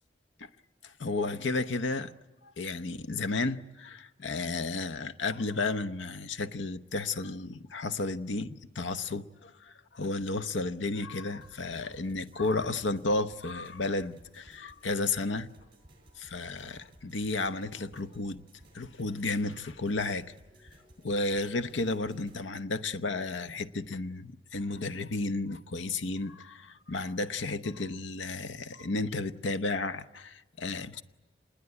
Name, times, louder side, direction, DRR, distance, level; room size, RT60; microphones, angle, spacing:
voice 1, 0.8-2.1 2.4-15.5 16.2-18.4 18.7-20.3 21.0-31.0, left 3 dB, 90° left, 0.9 m, -33 dB
sound 1, 11.4-22.4, right 1 dB, 25° right, 7.4 m, -58 dB
26.5 x 20.5 x 9.6 m
head